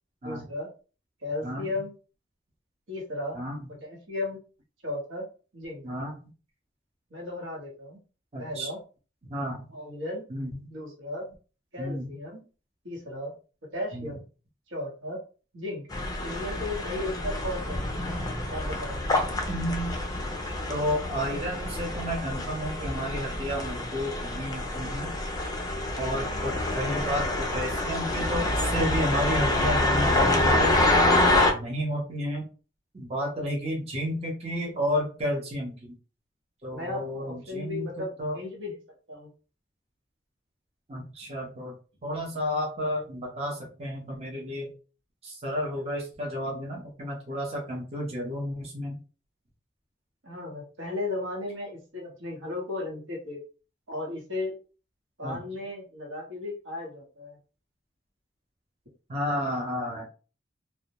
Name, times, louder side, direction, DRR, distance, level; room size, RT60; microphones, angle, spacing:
voice 1, 0.2-0.7 1.2-1.9 2.9-3.4 3.8-4.4 4.8-5.3 5.5-5.8 7.1-8.0 8.4-8.8 9.7-10.2 10.7-11.2 11.7-12.4 12.8-13.3 13.7-14.2 14.7-15.2 15.5-15.9 16.2-17.9 18.5-19.0 36.7-38.8 39.1-39.3 50.2-53.4 53.9-54.6 55.2-57.4, left 2 dB, 80° right, -1 dB, 1.0 m, -35 dB
voice 2, 3.3-3.7 5.8-6.3 8.3-8.7 9.3-9.7 10.3-10.5 11.8-12.1 13.9-14.1 19.5-19.9 20.7-25.1 26.0-30.8 31.5-32.5 32.9-35.9 36.6-37.9 38.2-38.4 40.9-41.8 42.0-44.7 45.2-49.0 55.2-55.4 59.1-60.1, equal, 30° right, -2 dB, 0.7 m, -31 dB
sound 1, 15.9-31.5, left 1 dB, 20° left, 0.4 m, -27 dB
2.2 x 2.0 x 2.8 m, 0.36 s
head